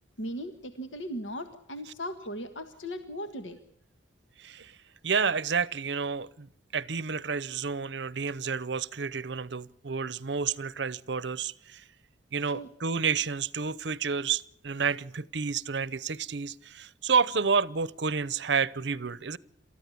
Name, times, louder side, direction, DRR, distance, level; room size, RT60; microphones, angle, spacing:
voice 1, 0.2-3.6 12.4-12.7, equal, 85° left, 1.6 m, -38 dB
voice 2, 4.4-4.7 5.0-6.5 6.7-11.8 12.3-19.4, right 5 dB, 65° right, 0.8 m, -30 dB
28.5 x 14.0 x 8.4 m
head